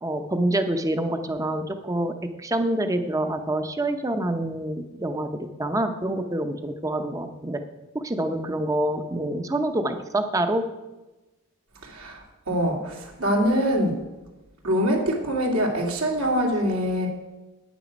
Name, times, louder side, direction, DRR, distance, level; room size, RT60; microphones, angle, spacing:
voice 1, 0.0-2.1 2.4-7.6 7.9-10.7, right 1 dB, 15° right, 7 dB, 0.7 m, -26 dB
voice 2, 11.8-14.0 14.6-17.1, equal, 75° right, -1 dB, 2.3 m, -24 dB
9.3 x 9.1 x 5.2 m, 1.1 s
head